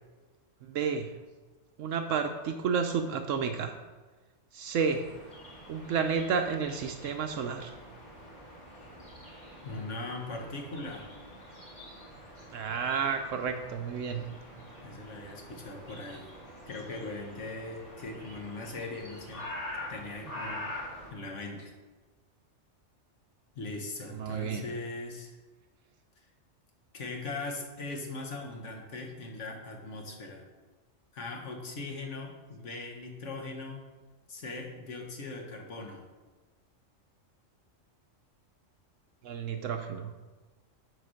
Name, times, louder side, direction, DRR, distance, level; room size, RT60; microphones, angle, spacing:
voice 1, 0.7-1.1 1.8-3.8 4.5-5.0 5.7-7.7 12.5-14.3 24.1-24.6 39.2-40.1, right 6 dB, 80° right, 5 dB, 1.0 m, -31 dB
sound 1, 4.8-21.1, left 1 dB, 30° left, 3.0 m, -45 dB
voice 2, 9.6-11.1 14.8-16.3 16.7-19.5 19.9-20.7 21.1-21.7 23.6-25.4 26.9-30.5 31.1-33.8 34.3-36.1, left 2 dB, 70° left, 1 dB, 1.7 m, -40 dB
8.1 x 4.8 x 6.3 m, 1.3 s
omnidirectional pair, 1.3 m